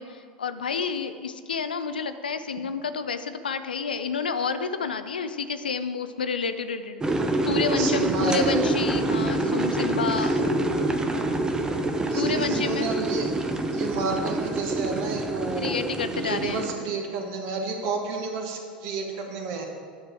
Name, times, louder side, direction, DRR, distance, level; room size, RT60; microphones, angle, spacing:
voice 1, 0.0-10.4 12.1-12.9 15.6-16.7, left 5 dB, 85° left, 11 dB, 0.4 m, -30 dB
sound 1, 7.0-16.7, right 2 dB, 15° right, 0.6 m, -26 dB
voice 2, 7.8-8.7 10.2-10.4 12.1-13.3 13.7-15.8 16.1-19.7, right 4 dB, 55° right, 2 dB, 1.2 m, -31 dB
9.5 x 3.3 x 6.0 m, 2.1 s
figure-of-eight pair, 80°, 5 cm